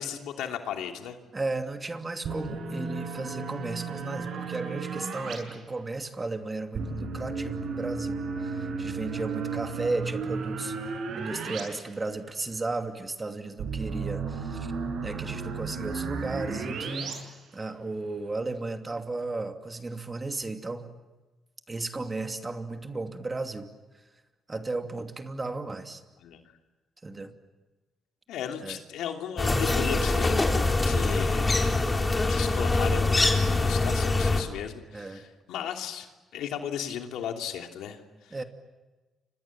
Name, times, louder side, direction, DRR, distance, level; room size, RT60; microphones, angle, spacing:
voice 1, 0.0-1.2 26.2-26.4 28.3-30.4 30.8-31.8 32.3-38.4, left 9 dB, 85° left, 4 dB, 2.9 m, -36 dB
voice 2, 1.3-10.8 11.1-14.7 15.0-20.9 21.7-23.7 24.5-26.0 27.0-27.3 28.6-28.8 34.9-35.3 38.3-38.4, right 3 dB, 25° right, 6 dB, 2.7 m, -34 dB
sound 1, 2.2-5.4 6.7-11.6 11.9-12.0 13.6-17.1, right 4 dB, 70° right, 7.3 m, -34 dB
sound 2, 29.4-34.4, left 2 dB, 20° left, 3.8 m, -24 dB
30.0 x 26.0 x 7.5 m, 1.2 s
cardioid pair, 90°, 0 cm